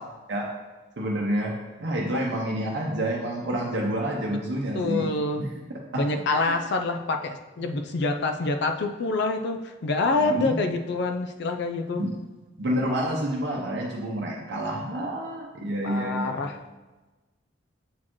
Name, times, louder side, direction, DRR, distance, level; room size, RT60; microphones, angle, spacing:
voice 1, 1.0-1.5 1.8-5.1 5.4-5.5 5.9-6.0 6.3-6.5 10.2-10.6 11.9-12.1 12.6-16.3, right 1 dB, 65° right, -2 dB, 0.7 m, -28 dB
voice 2, 4.7-5.5 5.9-12.0 15.8-16.6, left 3 dB, 60° left, 6 dB, 0.4 m, -26 dB
7.3 x 4.3 x 3.0 m, 1.2 s
head